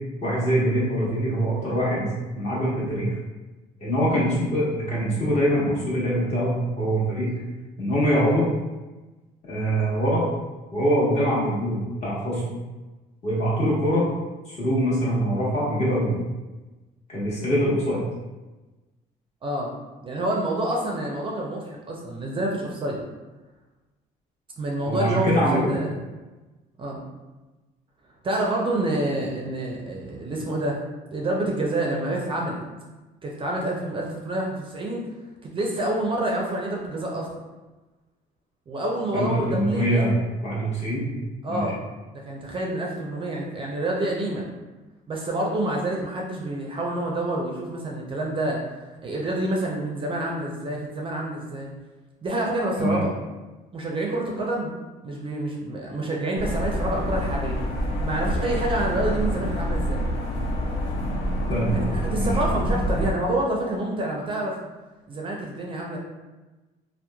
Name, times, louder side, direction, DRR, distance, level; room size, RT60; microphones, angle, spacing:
voice 1, 0.2-2.1 2.4-3.1 3.8-7.3 7.8-8.5 9.5-10.2 10.7-12.4 13.2-14.1 14.5-16.1 17.1-18.0 24.9-25.7 39.1-40.1 40.4-41.1 41.5-41.6 52.8-53.0 61.5-61.9 62.2-62.3, equal, 40° left, -7 dB, 1.1 m, -23 dB
voice 2, 19.4-19.7 20.0-23.0 24.6-25.9 26.8-27.0 28.2-30.8 31.1-32.6 33.2-35.0 35.4-37.3 38.7-40.1 41.4-41.8 42.1-44.5 45.1-48.6 49.0-51.7 52.2-53.1 53.7-54.7 55.0-57.6 58.0-60.1 61.7-64.6 65.1-66.0, right 1 dB, 30° right, -1 dB, 0.4 m, -27 dB
sound 1, 56.4-63.1, equal, 90° left, 0.5 m, -27 dB
2.9 x 2.0 x 2.2 m, 1.2 s
cardioid pair, 110°, 17 cm